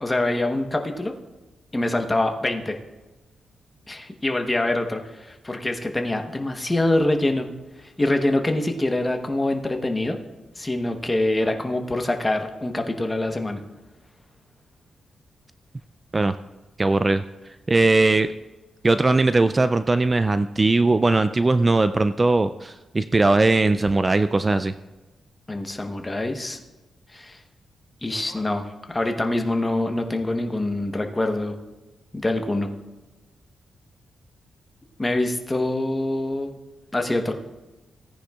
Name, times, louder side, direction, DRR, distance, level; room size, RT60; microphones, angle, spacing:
voice 1, 0.0-1.1 1.7-2.8 3.9-7.5 7.8-10.2 10.6-13.6 25.5-26.6 27.1-27.4 28.0-31.6 32.1-32.7 35.0-36.5 36.9-37.3, left 1 dB, 15° left, 4 dB, 1.0 m, -25 dB
voice 2, 16.8-17.2 17.7-18.3 18.8-24.7, right 2 dB, 25° right, 11 dB, 0.3 m, -19 dB
17.0 x 9.9 x 2.4 m, 1.2 s
cardioid pair, 110°, 0 cm